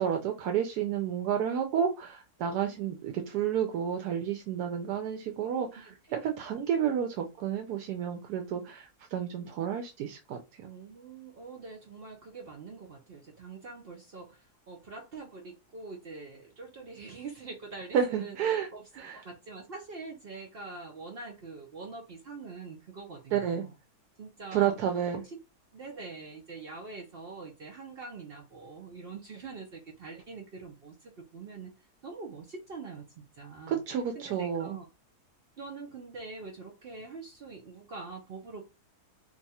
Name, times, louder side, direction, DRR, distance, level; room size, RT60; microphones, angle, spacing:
voice 1, 0.0-10.4 17.9-18.7 19.0-19.2 23.3-23.6 24.5-25.2 33.7-34.7, right 8 dB, 80° right, 1.1 m, -30 dB
voice 2, 10.6-23.8 24.2-24.9 25.2-25.4 25.7-33.8 34.1-34.9 35.6-38.6, right 4 dB, 55° right, 0.6 m, -44 dB
2.9 x 2.3 x 4.1 m
omnidirectional pair, 1.7 m